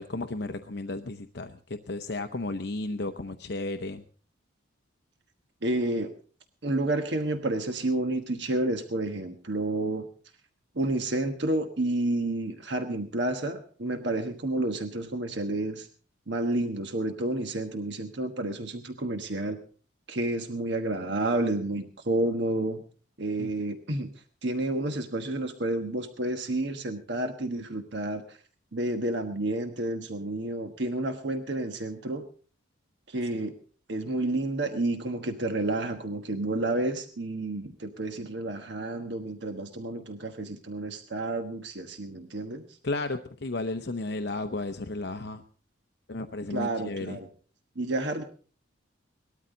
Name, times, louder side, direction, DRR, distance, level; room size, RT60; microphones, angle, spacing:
voice 1, 0.0-4.0 23.4-23.5 42.8-45.4 46.1-47.2, left 2 dB, 55° left, 7 dB, 0.7 m, -33 dB
voice 2, 5.6-6.1 6.6-10.1 10.7-15.9 16.3-19.6 20.1-22.8 23.2-24.1 24.4-28.4 28.7-32.2 33.1-33.6 33.9-42.6 46.5-47.3 47.8-48.2, right 2 dB, 60° right, 6 dB, 1.3 m, -30 dB
19.5 x 13.0 x 3.9 m, 0.40 s
head